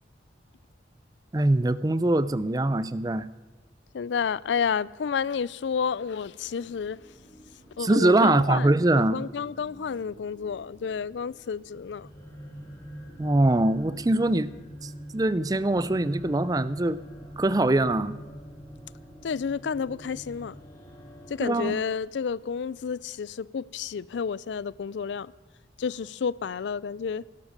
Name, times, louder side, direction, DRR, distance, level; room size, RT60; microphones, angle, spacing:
voice 1, 1.3-3.3 7.8-9.2 13.2-14.5 14.8-17.0 17.4-18.2 21.4-21.8, right 2 dB, 20° right, 0.5 m, -23 dB
voice 2, 3.9-7.0 7.8-8.7 8.9-12.1 19.2-20.5 21.3-25.3 25.8-27.2, left 6 dB, 80° left, 0.4 m, -30 dB
sound 1, 5.3-21.5, equal, 20° left, 3.8 m, -46 dB
17.0 x 12.0 x 6.6 m
head